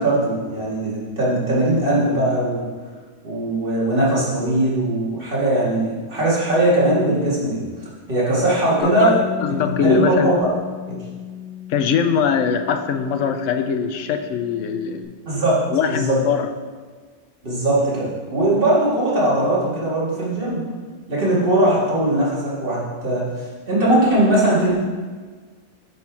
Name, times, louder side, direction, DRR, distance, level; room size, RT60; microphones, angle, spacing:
voice 1, 0.0-2.7 3.2-7.7 8.1-9.2 9.6-10.4 10.9-11.0 15.3-15.6 15.9-16.2 17.4-20.7 21.1-23.2 23.7-24.7, right 1 dB, 45° right, -7 dB, 2.5 m, -20 dB
Bass guitar, 8.8-13.5 13.8-15.0, left 8 dB, 65° right, 2.0 m, -34 dB
voice 2, 9.4-10.3 11.7-15.1 15.7-16.5, left 7 dB, 85° left, 7 dB, 1.0 m, -21 dB
9.0 x 4.5 x 4.7 m, 1.5 s
omnidirectional pair, 1.2 m